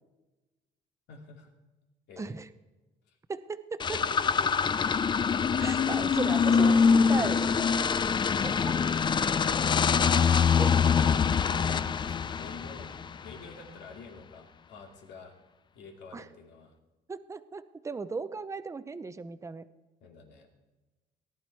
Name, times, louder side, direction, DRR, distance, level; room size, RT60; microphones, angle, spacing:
voice 1, 1.1-1.5 2.1-2.3 3.1-3.2 3.9-4.8 12.1-12.9 13.2-15.3 15.7-16.7 20.0-20.5, left 4 dB, 85° left, 2 dB, 2.5 m, -49 dB
voice 2, 2.2-2.5 3.3-4.0 5.6-7.5 8.4-8.7 10.1-10.7 16.1-16.3 17.1-19.6, right 4 dB, 15° right, 12 dB, 0.6 m, -37 dB
sound 1, 3.8-13.3, left 6 dB, 25° left, 0.4 m, -24 dB
18.5 x 11.0 x 4.6 m, 1.1 s
cardioid pair, 110°, 17 cm